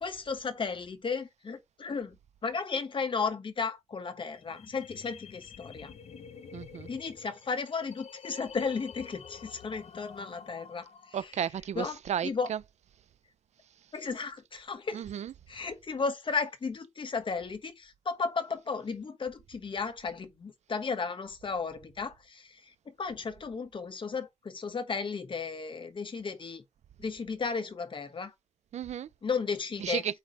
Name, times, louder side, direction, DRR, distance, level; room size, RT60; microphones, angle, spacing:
voice 1, 0.0-2.2 2.4-5.9 6.9-11.3 11.7-12.5 13.9-15.0 15.5-26.6 27.0-28.3 29.2-30.0, left 5 dB, 45° left, 1.2 m, -34 dB
sound 1, 4.3-11.3, left 7 dB, 60° left, 0.8 m, -49 dB
voice 2, 6.5-6.9 11.1-12.6 14.9-15.3 28.7-29.1 29.8-30.2, right 9 dB, 75° right, 0.4 m, -33 dB
8.1 x 3.3 x 4.0 m
wide cardioid pair, 115°, 12 cm